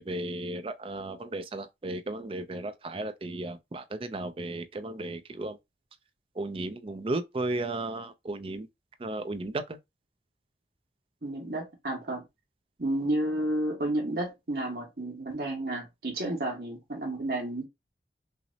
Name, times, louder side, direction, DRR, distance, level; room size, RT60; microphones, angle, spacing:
voice 1, 0.0-5.6 6.4-8.7 9.0-9.8, right 2 dB, 30° right, 0.4 m, -34 dB
voice 2, 11.2-12.2 12.8-17.7, right 1 dB, 60° right, 1.5 m, -31 dB
5.7 x 2.0 x 2.7 m
head